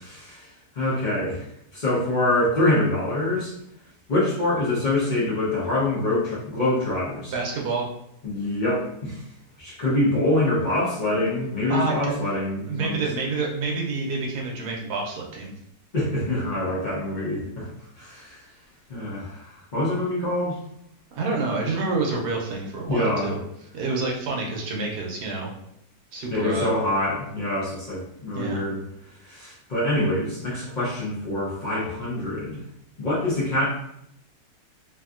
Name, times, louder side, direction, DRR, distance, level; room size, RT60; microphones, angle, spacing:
voice 1, 0.1-0.5 0.8-1.5 1.7-3.5 4.1-7.3 8.2-9.2 9.6-13.0 15.9-17.7 18.0-18.4 18.9-20.6 22.9-23.4 26.3-28.8 29.2-32.6 33.0-33.7, left 1 dB, 45° left, -7 dB, 0.6 m, -25 dB
voice 2, 7.3-7.9 11.7-12.3 12.7-15.5 21.1-23.4 23.7-25.5 26.1-26.7 28.3-28.6, right 3 dB, 70° right, -1 dB, 1.2 m, -28 dB
3.0 x 2.7 x 2.4 m, 0.77 s
omnidirectional pair, 1.9 m